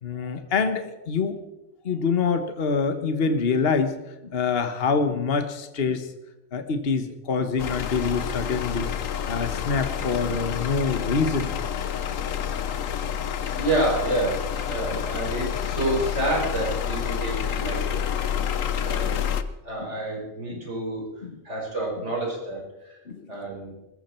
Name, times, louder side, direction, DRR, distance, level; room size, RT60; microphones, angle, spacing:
voice 1, 0.0-1.4 1.8-3.9 4.2-6.1 6.5-8.9 9.3-11.5 18.4-18.5 19.1-19.3 19.8-19.9 20.5-20.6 21.2-21.4 23.1-23.3, left 5 dB, 45° left, 8 dB, 1.4 m, -25 dB
sound 1, 7.6-19.4, left 8 dB, 70° left, 1.3 m, -28 dB
voice 2, 13.5-18.1 18.7-19.3 19.6-21.1 21.4-23.0 23.3-23.8, right 2 dB, 55° right, -2 dB, 6.0 m, -29 dB
20.0 x 15.0 x 4.5 m, 0.97 s
omnidirectional pair, 1.4 m